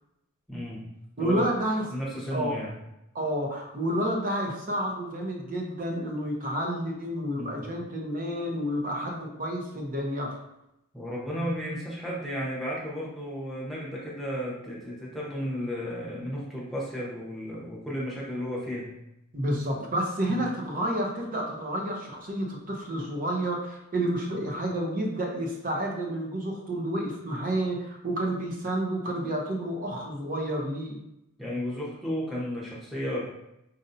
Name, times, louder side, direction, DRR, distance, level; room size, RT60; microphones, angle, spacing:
voice 1, 0.5-0.8 1.2-1.5 1.9-2.8 7.3-7.6 10.9-18.9 19.8-19.9 20.3-20.5 31.4-33.3, equal, ahead, -6 dB, 0.9 m, -33 dB
voice 2, 1.2-1.9 2.3-2.6 3.1-10.4 11.4-11.5 19.3-31.0, right 1 dB, 40° right, 0 dB, 0.7 m, -30 dB
5.3 x 2.6 x 2.7 m, 0.86 s
head